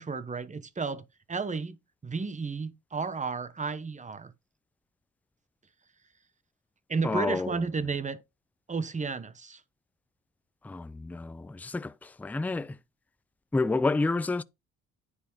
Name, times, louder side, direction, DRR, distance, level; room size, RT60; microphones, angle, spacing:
voice 1, 0.0-4.3 6.9-8.2 8.7-9.6, right 4 dB, 25° right, 1.0 m, -32 dB
voice 2, 7.0-7.6 10.6-12.8 13.5-14.4, left 3 dB, 5° left, 0.4 m, -29 dB
9.8 x 4.1 x 5.5 m
cardioid pair, 90°, 30 cm